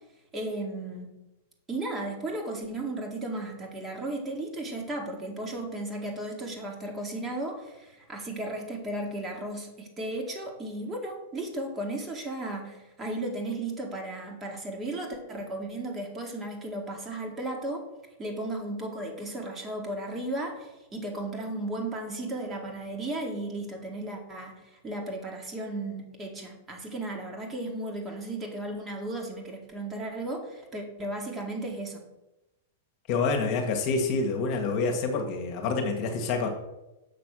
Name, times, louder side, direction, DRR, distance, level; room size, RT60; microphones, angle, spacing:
voice 1, 0.3-1.1 1.7-17.9 18.2-32.0, right 2 dB, 20° right, 1 dB, 2.1 m, -35 dB
voice 2, 33.1-36.5, left 4 dB, 40° left, 3 dB, 1.6 m, -27 dB
7.0 x 6.0 x 6.1 m, 0.98 s
figure-of-eight pair, 100°, 0 cm